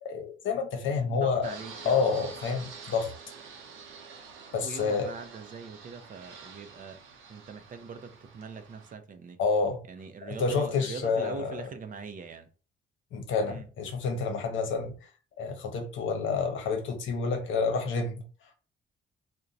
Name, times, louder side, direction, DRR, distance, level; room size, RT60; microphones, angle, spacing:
voice 1, 0.0-1.5 1.9-3.1 4.5-5.1 9.4-9.8 10.3-11.5 13.1-15.1 15.4-18.2, left 5 dB, 75° left, 0.8 m, -29 dB
voice 2, 0.8-2.2 4.6-7.0 7.3-9.4 9.9-12.5 13.5-13.7, right 5 dB, 45° right, 0.5 m, -42 dB
Fixed-wing aircraft airplane, 1.4-8.9, right 5 dB, 85° right, 0.7 m, -47 dB
2.5 x 2.1 x 3.9 m
cardioid pair, 90°, 20 cm